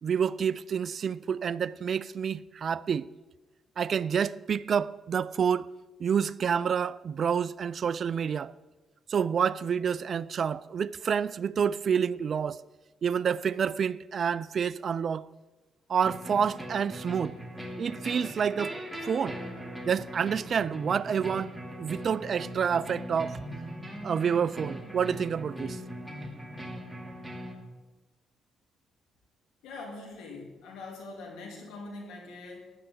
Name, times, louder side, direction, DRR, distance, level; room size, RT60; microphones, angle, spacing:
voice 1, 0.0-3.1 3.8-5.7 6.0-8.5 9.1-12.6 13.0-15.3 15.9-17.3 17.8-18.8 19.0-19.4 19.8-23.4 24.0-25.8, right 7 dB, 50° right, 0.4 m, -28 dB
sound 1, 16.0-27.5, equal, ahead, 2.7 m, -40 dB
voice 2, 29.6-32.7, left 3 dB, 90° left, 3.0 m, -43 dB
15.5 x 10.5 x 3.8 m
cardioid pair, 90°, 0 cm